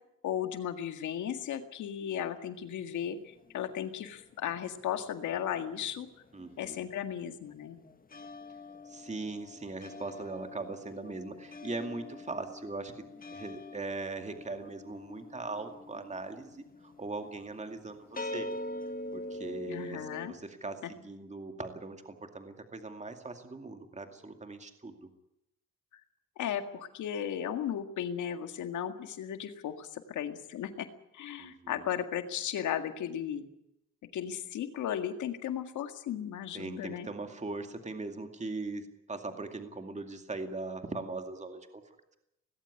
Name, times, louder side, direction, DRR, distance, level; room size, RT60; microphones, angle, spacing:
voice 1, 0.2-6.1 6.6-7.8 19.7-20.3 26.4-30.9 31.1-33.4 34.1-37.1, left 9 dB, 85° left, 7 dB, 1.9 m, -35 dB
sound 1, 2.6-5.2 5.5-20.3, left 1 dB, 30° left, 1.7 m, -45 dB
voice 2, 6.3-6.8 8.8-13.0 13.3-18.5 19.1-25.1 31.4-31.9 36.5-42.2, right 3 dB, 25° right, 6 dB, 2.3 m, -40 dB
18.5 x 17.0 x 9.8 m, 0.86 s
cardioid pair, 75°, 29 cm